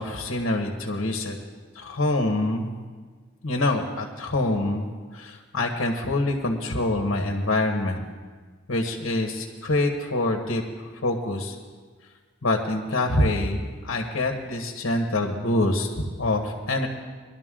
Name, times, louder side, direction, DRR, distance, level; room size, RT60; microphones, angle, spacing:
voice 1, 0.0-1.4 1.7-2.8 3.4-4.9 5.1-8.0 8.7-11.6 12.4-16.9, left 2 dB, 70° left, 2 dB, 1.3 m, -25 dB
21.5 x 12.0 x 3.8 m, 1.5 s
head